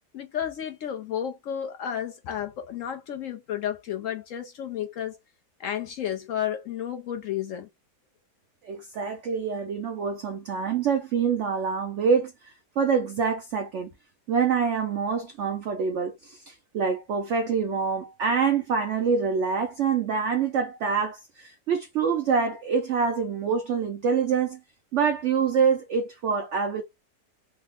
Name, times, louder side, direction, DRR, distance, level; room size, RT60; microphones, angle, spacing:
voice 1, 0.1-5.2 5.6-7.7, left 10 dB, 70° left, 0.8 m, -32 dB
voice 2, 8.6-13.9 14.3-24.6 24.9-26.8, right 6 dB, 75° right, 0.6 m, -26 dB
3.3 x 2.0 x 3.5 m
omnidirectional pair, 1.8 m